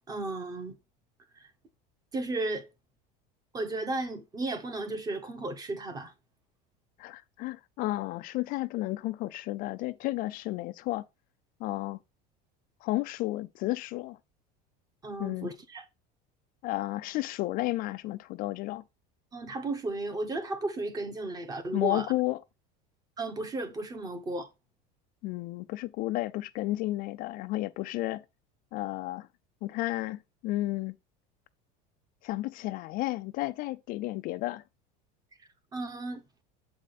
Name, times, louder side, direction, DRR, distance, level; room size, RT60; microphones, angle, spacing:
voice 1, 0.1-0.8 1.4-1.5 2.1-2.7 3.5-6.1 15.0-15.8 19.3-22.1 23.2-24.5 35.7-36.2, right 2 dB, 20° right, 0.9 m, -34 dB
voice 2, 7.0-11.0 11.6-12.0 12.8-14.2 15.2-15.5 16.6-18.8 21.7-22.4 25.2-28.2 28.7-29.3 29.6-31.0 32.2-34.6, left 18 dB, 45° left, 0.4 m, -32 dB
7.6 x 4.9 x 4.0 m
cardioid pair, 155°, 21 cm